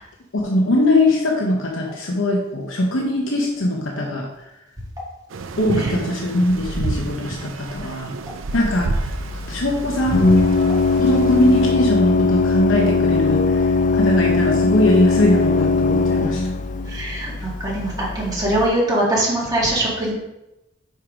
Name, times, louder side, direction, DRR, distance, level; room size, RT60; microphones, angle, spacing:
voice 1, 0.3-4.3 5.6-8.1 8.5-8.9 9.5-10.4 11.0-16.4, left 1 dB, 75° left, 0 dB, 0.9 m, -20 dB
sound 1, 5.3-11.7, right 3 dB, 75° right, 0.5 m, -29 dB
Organ, 8.5-18.7, left 3 dB, 40° left, 0.4 m, -20 dB
voice 2, 16.9-20.1, right 1 dB, 20° right, -5 dB, 2.1 m, -22 dB
5.7 x 4.6 x 4.9 m, 0.93 s
head